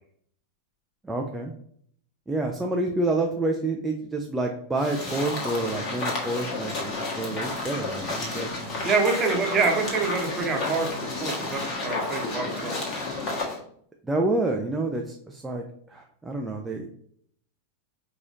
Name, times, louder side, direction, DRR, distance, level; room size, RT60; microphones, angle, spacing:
voice 1, 1.0-1.5 2.3-8.9 14.0-16.9, right 2 dB, 10° right, 0 dB, 0.4 m, -28 dB
sound 1, 4.8-13.6, left 2 dB, 35° left, 1.2 m, -31 dB
voice 2, 8.8-10.9 11.2-12.9, right 4 dB, 25° right, 1 dB, 1.0 m, -26 dB
4.7 x 2.9 x 2.6 m, 0.64 s
figure-of-eight pair, 90°, 0 cm